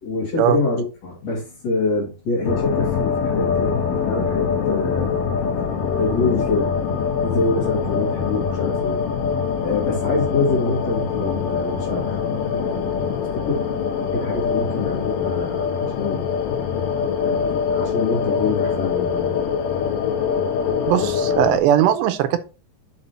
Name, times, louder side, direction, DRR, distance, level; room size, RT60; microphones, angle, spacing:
voice 1, 0.0-3.8 4.0-5.2 6.0-6.7 7.2-9.0 9.6-13.1 13.3-13.7 14.1-16.2 17.2-19.6 20.6-21.1, left 3 dB, 50° left, 2.5 m, -25 dB
sound 1, 2.4-21.6, left 6 dB, 70° left, 2.4 m, -23 dB
voice 2, 20.9-22.4, right 10 dB, 90° right, 3.0 m, -18 dB
7.2 x 4.8 x 4.2 m
omnidirectional pair, 4.8 m